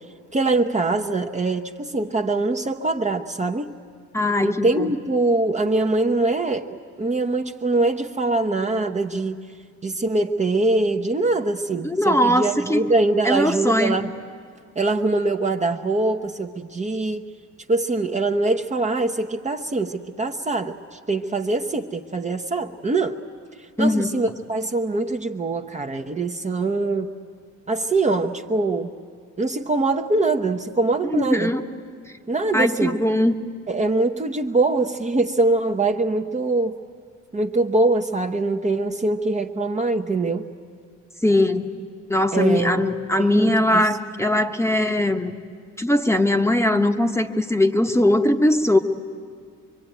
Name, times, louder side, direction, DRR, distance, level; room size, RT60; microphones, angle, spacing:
voice 1, 0.3-3.7 4.4-9.4 9.8-14.1 14.8-17.3 17.7-23.2 23.8-27.1 27.7-28.9 29.4-31.5 32.3-33.0 33.7-36.7 37.3-40.5 42.3-43.9, right 2 dB, 25° right, 4 dB, 0.9 m, -23 dB
voice 2, 4.1-4.9 11.8-12.8 13.2-14.0 23.8-24.1 31.1-31.6 32.5-33.3 41.2-41.6 42.1-45.3 45.8-48.8, left 1 dB, 10° left, 6 dB, 1.1 m, -20 dB
24.5 x 23.5 x 9.2 m, 2.1 s
cardioid pair, 90°, 30 cm